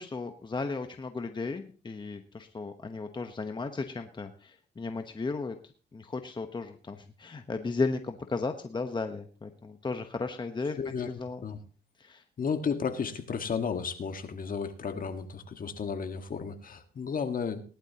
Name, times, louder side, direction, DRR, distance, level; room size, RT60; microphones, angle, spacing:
voice 1, 0.0-5.6 5.9-10.8 11.0-11.4 12.0-12.2, left 3 dB, 25° left, 7 dB, 1.0 m, -35 dB
voice 2, 10.8-11.1 11.4-11.6 12.4-17.6, left 6 dB, 45° left, 8 dB, 1.6 m, -33 dB
18.5 x 11.5 x 2.9 m, 0.39 s
cardioid pair, 90°, 20 cm